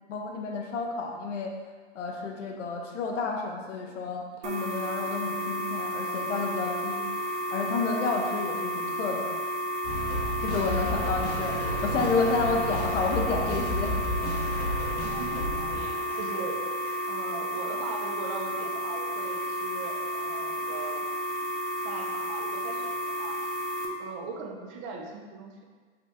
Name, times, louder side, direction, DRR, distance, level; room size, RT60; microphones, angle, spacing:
voice 1, 0.1-1.5 1.9-9.3 10.4-13.9 14.3-14.4, left 4 dB, 80° left, 2 dB, 0.9 m, -30 dB
sound 1, 4.4-23.9, equal, 70° right, 0.9 m, -32 dB
sound 2, 9.8-17.0, equal, 35° left, 0.8 m, -33 dB
voice 2, 15.0-16.6 17.1-21.1 21.8-23.6 24.0-25.6, right 4 dB, 30° right, 2 dB, 0.5 m, -40 dB
5.4 x 2.3 x 4.1 m, 1.4 s
hypercardioid pair, 145°, 36 cm